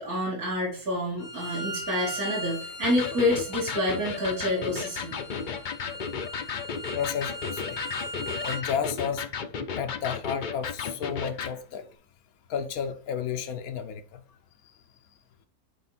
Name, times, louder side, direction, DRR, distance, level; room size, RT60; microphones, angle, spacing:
voice 1, 0.0-5.2, left 1 dB, 70° right, 3.3 m, -28 dB
Bowed string instrument, 1.2-8.6, equal, 30° left, 1.1 m, -39 dB
Electric guitar, 2.8-11.6, left 6 dB, 50° left, 0.6 m, -34 dB
voice 2, 6.9-7.8 8.4-9.2 9.8-11.8 12.5-14.0, left 7 dB, 75° left, 1.2 m, -32 dB
8.5 x 4.3 x 4.1 m
omnidirectional pair, 1.6 m